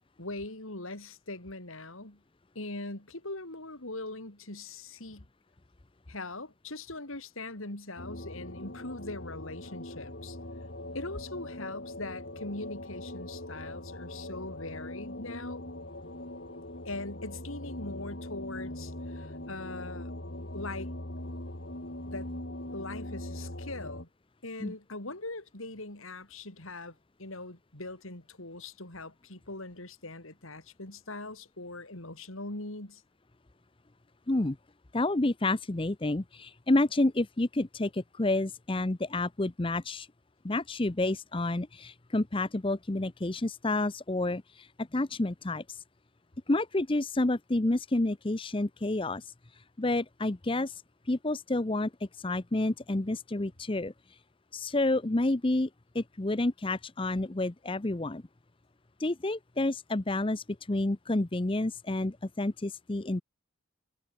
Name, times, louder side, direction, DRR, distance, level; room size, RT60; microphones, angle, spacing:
voice 1, 0.2-2.2 2.5-5.3 6.1-10.4 10.9-15.6 16.8-20.1 20.5-20.9 22.1-22.3 22.7-24.1 24.4-33.0, left 2 dB, 75° left, 4.5 m, -41 dB
sound 1, 8.0-24.1, left 1 dB, 55° left, 3.3 m, -41 dB
voice 2, 34.9-40.1 40.4-45.8 46.5-49.2 49.8-50.7 51.1-51.9 52.2-53.9 54.5-55.7 55.9-58.2 59.0-63.2, left 2 dB, 25° left, 0.7 m, -29 dB
head